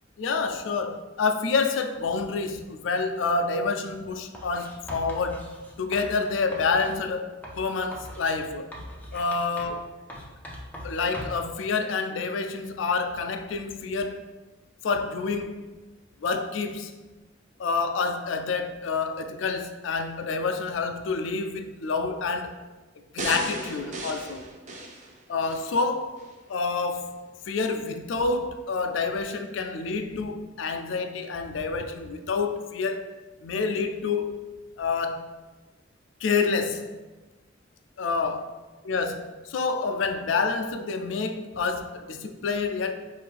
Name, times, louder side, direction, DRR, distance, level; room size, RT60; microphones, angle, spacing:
voice 1, 0.2-5.5 5.8-7.3 7.6-8.7 9.1-9.9 10.8-14.2 14.8-15.7 16.2-16.9 17.6-22.6 23.1-24.5 25.3-26.2 26.5-27.2 27.5-33.1 33.4-34.4 34.8-35.3 36.2-36.9 38.0-38.4 38.8-42.9, left 4 dB, 80° left, 0.4 m, -28 dB
Writing, 4.3-7.0 7.4-9.8 10.1-11.5, equal, 10° left, 0.5 m, -41 dB
sound 1, 23.2-25.7 26.2-26.3, right 2 dB, 40° right, 0.5 m, -35 dB
4.6 x 2.6 x 3.5 m
head